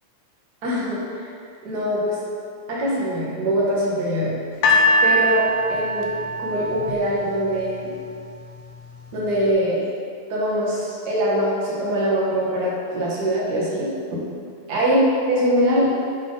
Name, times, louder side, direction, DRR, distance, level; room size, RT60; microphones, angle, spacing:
voice 1, 0.6-1.3 1.6-2.2 2.7-4.3 5.0-6.1 6.4-7.9 9.1-9.8 10.3-14.2 14.7-16.0, equal, 50° right, -7 dB, 1.3 m, -23 dB
sound 1, 4.6-7.8 8.6-8.7, left 1 dB, 80° left, 2.2 m, -21 dB
9.4 x 3.6 x 3.9 m, 2.3 s
omnidirectional pair, 3.7 m